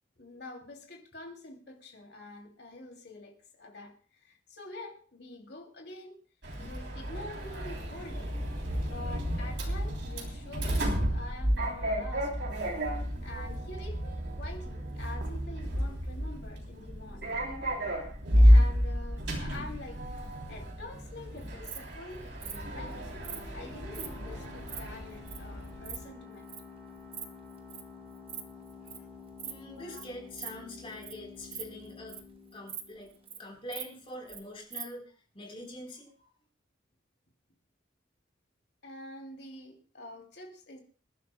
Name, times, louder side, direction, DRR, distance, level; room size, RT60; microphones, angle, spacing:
voice 1, 0.2-6.2 6.6-8.4 8.8-12.5 13.2-17.3 18.3-20.1 20.5-23.1 23.5-26.5 29.8-30.0 38.8-40.8, left 2 dB, 60° left, 2.8 m, -46 dB
Sliding door, 6.4-26.0, equal, 65° right, 3.3 m, -30 dB
Insect, 21.4-21.8 22.4-22.6 23.2-23.4 23.9-24.1 24.4-24.8 25.3-25.4 25.6-26.0 26.5-26.6 27.0-27.3 27.5-27.8 28.2-28.4 28.7-29.0 29.4-29.6 29.9-30.0 30.4-30.5 30.9-31.1 31.4-32.3 32.7-32.8 33.1-33.4 33.7-34.4 34.7-34.8, right 8 dB, 30° right, 1.2 m, -41 dB
sound 1, 22.4-33.8, left 4 dB, 10° left, 3.2 m, -50 dB
voice 2, 29.4-32.2 32.5-33.1 33.4-36.3, left 1 dB, 30° left, 4.0 m, -44 dB
27.0 x 11.0 x 2.3 m
head